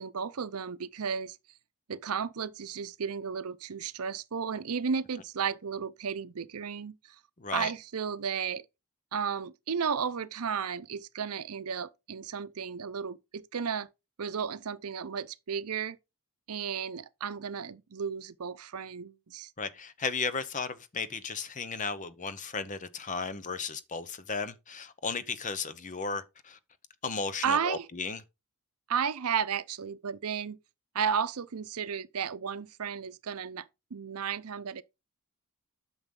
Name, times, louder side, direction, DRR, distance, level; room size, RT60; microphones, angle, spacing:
voice 1, 0.0-1.4 1.9-7.1 7.5-8.6 9.1-13.9 14.2-16.0 16.5-19.5 27.4-27.9 28.9-30.6 30.9-34.8, right 6 dB, 80° right, 0.7 m, -33 dB
voice 2, 7.4-7.7 19.6-26.6 27.0-28.2, left 4 dB, 35° left, 0.8 m, -35 dB
9.0 x 6.2 x 3.8 m
head